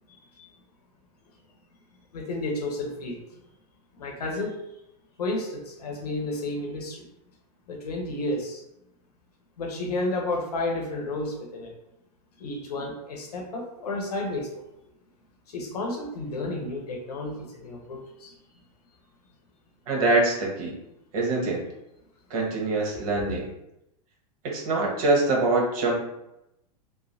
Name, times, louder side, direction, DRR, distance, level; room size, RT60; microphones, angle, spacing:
voice 1, 2.1-3.2 4.0-4.6 5.2-7.1 7.7-8.6 9.6-11.7 12.4-14.6 15.5-18.3 22.9-23.0, left 2 dB, 85° left, 1 dB, 0.8 m, -31 dB
voice 2, 19.9-20.7 21.1-21.6 22.3-23.5 24.4-25.9, right 2 dB, 65° right, -2 dB, 1.1 m, -24 dB
3.1 x 2.1 x 2.6 m, 0.86 s
hypercardioid pair, 110°, 20 cm